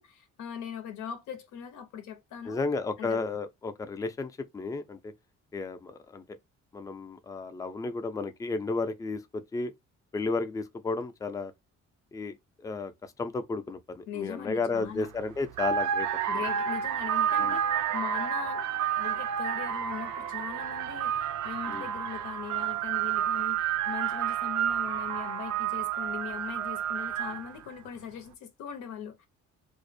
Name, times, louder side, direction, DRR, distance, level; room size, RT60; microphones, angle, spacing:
voice 1, 0.0-2.6 3.0-3.2 14.1-15.1 16.3-29.3, left 9 dB, 85° left, 0.6 m, -40 dB
voice 2, 2.5-5.1 5.5-6.2 6.7-9.7 10.1-11.5 12.1-12.4 12.6-12.9 13.2-16.1 17.4-17.6 21.7-21.9, left 3 dB, 10° left, 0.3 m, -33 dB
sound 1, 14.9-15.1 15.5-27.6, right 9 dB, 70° right, 0.5 m, -30 dB
2.4 x 2.0 x 2.5 m
cardioid pair, 90°, 30 cm